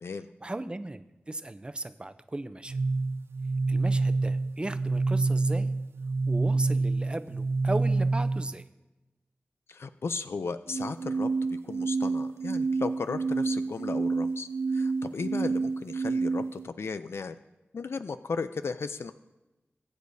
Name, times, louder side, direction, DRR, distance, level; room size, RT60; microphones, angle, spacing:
voice 1, 0.4-2.8 3.7-5.7 6.3-8.6, right 2 dB, 25° right, 11 dB, 0.6 m, -36 dB
sound 1, 2.7-8.6 10.7-16.7, right 3 dB, 75° right, 0.4 m, -28 dB
voice 2, 9.7-17.4 17.7-19.1, left 4 dB, 80° left, 11 dB, 0.4 m, -35 dB
20.0 x 8.4 x 2.7 m, 1.0 s
wide cardioid pair, 80°, 4 cm